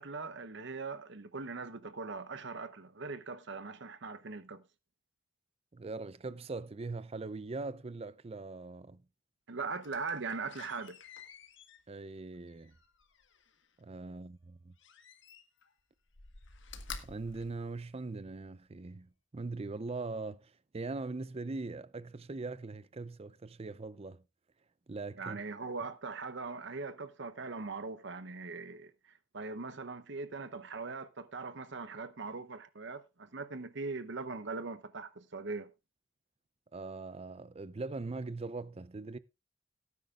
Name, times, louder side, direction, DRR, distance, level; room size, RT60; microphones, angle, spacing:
voice 1, 0.0-4.6 9.5-11.0 25.2-28.9 29.3-35.7, right 4 dB, 65° right, 0.8 m, -40 dB
voice 2, 5.7-9.0 11.9-12.7 13.8-14.7 17.0-24.2 24.9-25.4 36.7-39.2, right 3 dB, 30° right, 0.5 m, -41 dB
Slam, 9.8-13.7 14.8-15.7 16.1-18.4 18.9-19.0, left 5 dB, 65° left, 1.4 m, -50 dB
17.5 x 9.4 x 2.4 m
head